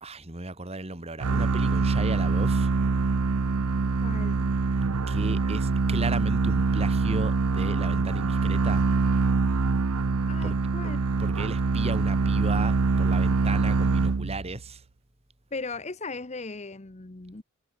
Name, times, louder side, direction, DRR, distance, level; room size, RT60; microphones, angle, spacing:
voice 1, 0.0-2.7 5.1-8.9 10.4-10.6 11.2-14.8, right 2 dB, 30° right, 2.1 m, -35 dB
sound 1, 1.2-14.6, right 4 dB, 90° right, 0.7 m, -24 dB
voice 2, 4.0-4.5 10.3-11.0 15.5-17.4, left 3 dB, 30° left, 1.0 m, -37 dB
head